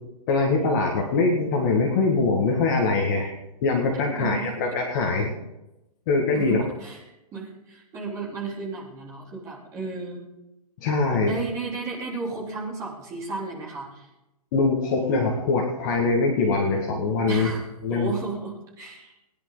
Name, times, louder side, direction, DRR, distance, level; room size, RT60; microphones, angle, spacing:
voice 1, 0.3-3.3 3.6-5.3 6.1-6.6 10.8-11.4 14.5-17.5 17.8-18.1, left 3 dB, 30° left, 1 dB, 1.7 m, -23 dB
voice 2, 4.1-4.5 6.3-7.0 7.3-10.2 11.2-14.1 17.3-19.1, right 4 dB, 15° right, -5 dB, 3.4 m, -34 dB
20.0 x 10.5 x 3.9 m, 0.94 s
hypercardioid pair, 160°, 21 cm